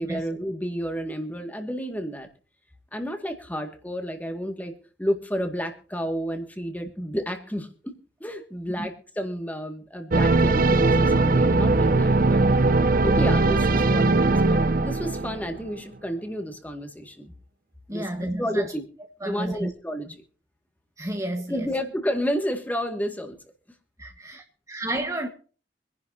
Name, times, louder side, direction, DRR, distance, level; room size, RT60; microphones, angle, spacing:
voice 1, 0.0-2.3 2.9-4.7 5.0-12.4 13.0-17.3 17.9-18.0 18.4-18.9 19.2-20.1 21.5-23.4, equal, 10° left, 2.0 m, -31 dB
sound 1, 10.1-15.6, right 3 dB, 50° right, 0.7 m, -20 dB
voice 2, 17.9-18.7 19.2-19.7 20.1-20.2 21.0-21.7 24.0-24.4 24.7-25.3, right 1 dB, 15° right, 1.4 m, -31 dB
25.0 x 11.0 x 2.8 m
head